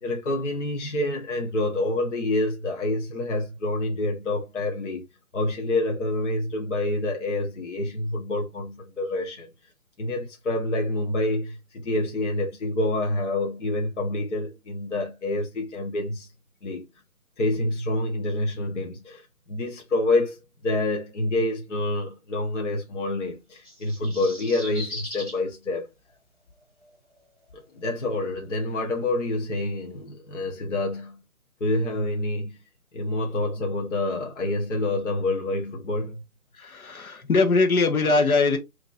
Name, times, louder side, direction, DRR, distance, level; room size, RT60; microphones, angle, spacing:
voice 1, 0.0-5.0 5.3-9.5 10.0-16.3 16.6-16.9 17.4-25.9 27.7-31.2 31.6-32.6 32.9-36.2, left 2 dB, 55° left, 1.1 m, -27 dB
sound 1, 23.5-25.4 26.8-26.9, left 1 dB, 10° left, 2.3 m, -38 dB
voice 2, 36.5-38.6, left 3 dB, 70° left, 1.2 m, -21 dB
5.4 x 2.9 x 2.4 m
hypercardioid pair, 170°, 44 cm